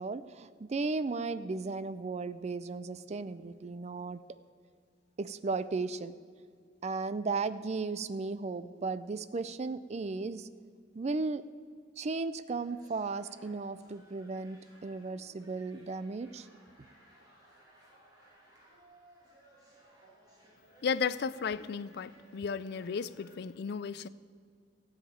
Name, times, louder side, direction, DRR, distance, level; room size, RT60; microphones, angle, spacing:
voice 1, 0.0-4.2 5.2-6.1 6.8-10.5 10.9-11.4 12.0-16.5, right 3 dB, 35° right, 14 dB, 0.4 m, -35 dB
sound 1, 12.6-23.4, right 1 dB, 20° right, 3.0 m, -61 dB
voice 2, 20.8-24.1, left 6 dB, 60° left, 17 dB, 0.4 m, -34 dB
15.0 x 5.0 x 8.8 m, 2.1 s
head